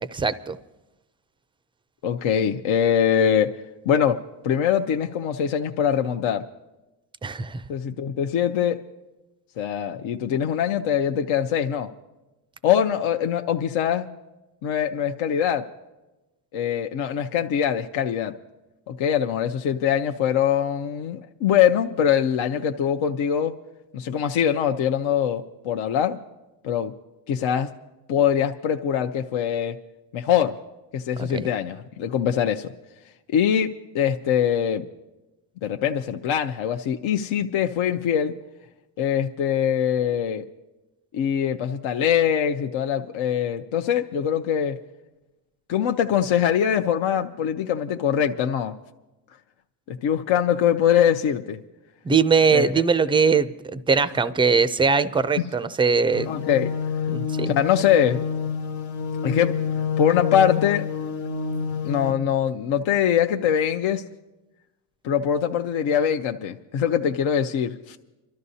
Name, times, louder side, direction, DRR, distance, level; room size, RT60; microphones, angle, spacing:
voice 1, 0.1-0.6 7.2-7.6 31.2-31.5 52.0-56.3 57.1-57.5, right 5 dB, 10° right, 14 dB, 0.4 m, -21 dB
voice 2, 2.0-3.5 3.9-4.2 4.4-6.4 7.7-8.8 9.6-11.9 12.6-14.1 14.6-15.6 16.5-18.3 18.9-23.5 23.9-26.2 26.6-26.9 27.3-27.7 28.1-29.8 30.1-30.5 30.9-32.7 33.3-34.8 35.6-38.3 39.0-40.4 41.1-44.8 45.7-48.7 49.9-51.6 52.5-52.8 55.4-55.5 56.3-56.7 57.5-58.2 59.2-59.5 60.0-60.9 61.8-64.0 65.0-68.0, left 9 dB, 70° left, 4 dB, 0.7 m, -23 dB
sound 1, 56.1-62.1, left 6 dB, 90° left, 1.0 m, -28 dB
29.0 x 12.5 x 2.8 m, 1.1 s
cardioid pair, 85°, 49 cm